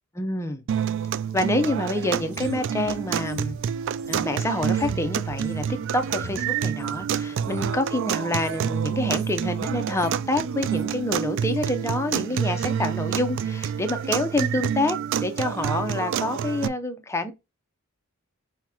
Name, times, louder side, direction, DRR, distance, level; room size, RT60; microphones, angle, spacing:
voice 1, 0.2-0.6 1.3-3.6 4.1-5.6 5.9-15.0 15.2-17.3, left 1 dB, 15° left, 0.6 m, -27 dB
sound 1, 0.7-16.7, right 8 dB, 60° right, 0.3 m, -28 dB
sound 2, 2.3-7.0 7.4-7.8 8.3-8.6 8.9-9.4 9.7-10.3 10.5-10.9 11.4-11.6, equal, 85° right, 2.3 m, -43 dB
4.9 x 2.9 x 3.5 m
head